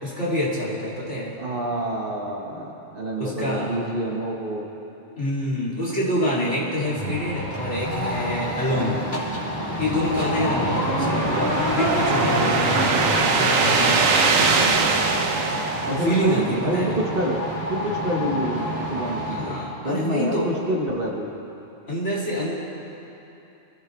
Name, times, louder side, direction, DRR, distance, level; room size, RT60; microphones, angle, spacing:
voice 1, 0.0-1.3 3.2-3.7 5.2-9.0 9.8-14.4 16.0-16.9 19.2-20.5 21.9-22.5, equal, 60° left, -6 dB, 3.3 m, -26 dB
voice 2, 1.4-4.7 8.7-9.2 10.3-10.8 15.6-17.4 17.7-19.6 19.8-21.3, right 1 dB, 45° right, -1 dB, 1.7 m, -27 dB
sound 1, 6.8-19.6, equal, 15° left, 3.3 m, -28 dB
sound 2, 10.0-16.5, right 4 dB, 90° right, 1.4 m, -23 dB
23.5 x 15.0 x 3.3 m, 2.9 s
omnidirectional pair, 1.3 m